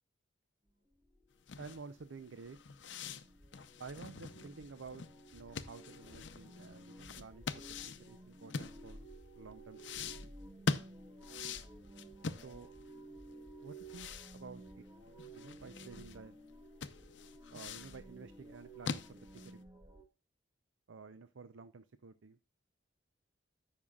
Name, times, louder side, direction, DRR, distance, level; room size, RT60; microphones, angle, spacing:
sound 1, 0.7-20.0, right 2 dB, 20° right, 1.6 m, -54 dB
sound 2, 1.4-9.2 9.8-12.9 13.2-13.3 13.7-16.2 16.5-16.6 16.8-18.0 18.5-19.6, left 4 dB, 65° left, 0.6 m, -43 dB
voice 1, 1.6-2.6 3.8-5.0 5.3-9.1 9.4-10.4 12.4-12.7 13.6-14.8 15.3-16.4 17.5-19.7 20.9-22.4, right 4 dB, 85° right, 11 dB, 0.6 m, -51 dB
13.5 x 5.6 x 2.3 m, 0.31 s
head